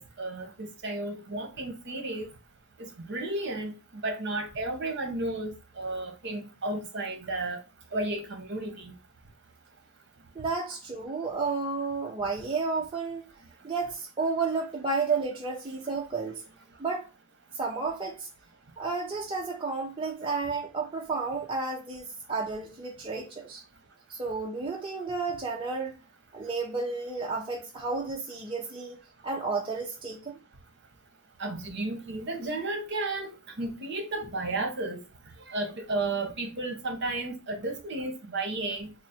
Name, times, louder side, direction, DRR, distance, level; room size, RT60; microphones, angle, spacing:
voice 1, 0.0-2.3 2.8-7.6 7.9-8.9 31.4-35.0 35.5-38.9, right 2 dB, 55° right, 0.9 m, -33 dB
voice 2, 10.4-13.2 13.6-16.4 16.8-17.1 17.5-18.3 18.8-23.6 24.1-25.9 26.3-29.0 29.2-30.4, right 4 dB, 25° right, 0.5 m, -32 dB
3.9 x 2.0 x 4.1 m
head